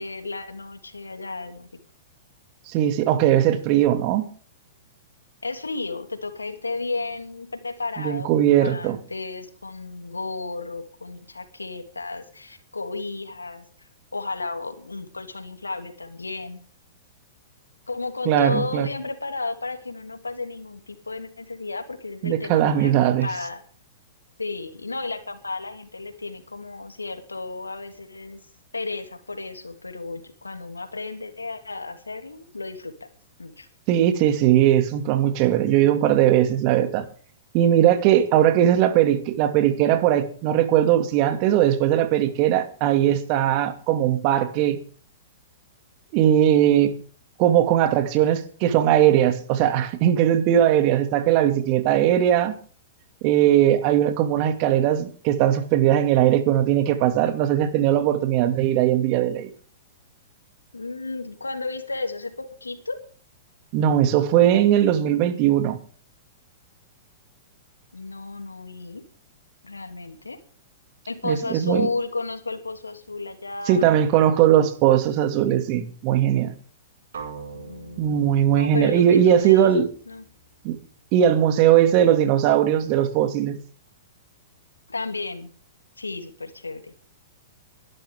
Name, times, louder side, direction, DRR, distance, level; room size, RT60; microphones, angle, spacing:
voice 1, 0.0-1.7 5.4-16.6 17.9-23.6 24.4-28.4 28.7-33.1 33.4-33.7 60.7-63.0 67.9-69.0 69.6-70.4 71.1-74.0 77.5-80.3 84.9-85.5 86.0-86.9, left 3 dB, 85° left, 2.7 m, -33 dB
voice 2, 2.7-4.3 8.0-9.0 18.3-18.9 22.2-23.3 33.9-37.1 37.5-44.8 46.1-46.9 47.4-52.5 53.2-59.5 63.7-65.8 71.2-71.9 73.7-76.5 78.0-79.9 80.6-80.8 81.1-83.6, right 11 dB, 40° right, 2.3 m, -19 dB
sound 1, 77.1-81.1, right 5 dB, 70° right, 6.4 m, -43 dB
23.0 x 12.0 x 3.7 m
figure-of-eight pair, 110°, 0 cm